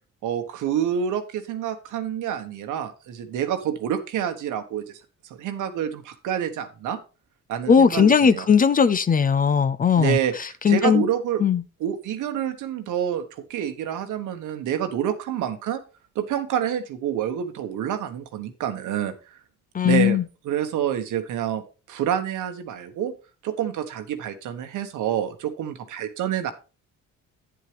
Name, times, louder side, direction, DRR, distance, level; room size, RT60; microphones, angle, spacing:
voice 1, 0.2-5.0 5.2-7.0 7.5-8.5 10.0-11.4 11.8-13.2 13.5-15.8 16.1-19.3 19.9-20.2 20.4-23.1 23.4-26.5, right 9 dB, 85° right, 1.3 m, -28 dB
voice 2, 7.7-10.2 10.6-11.0 11.4-11.6 19.7-20.2, left 6 dB, 30° left, 0.5 m, -18 dB
9.2 x 8.1 x 3.4 m
cardioid pair, 90°, 30 cm